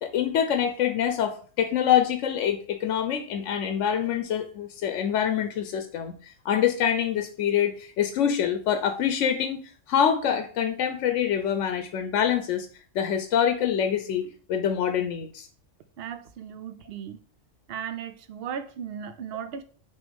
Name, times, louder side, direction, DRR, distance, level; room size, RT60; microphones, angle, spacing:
voice 1, 0.0-9.6 9.9-12.7 12.9-15.5, left 9 dB, 80° left, 1.0 m, -25 dB
voice 2, 16.0-17.2 17.7-19.6, right 8 dB, 60° right, 0.8 m, -36 dB
6.3 x 3.1 x 5.2 m
omnidirectional pair, 1.2 m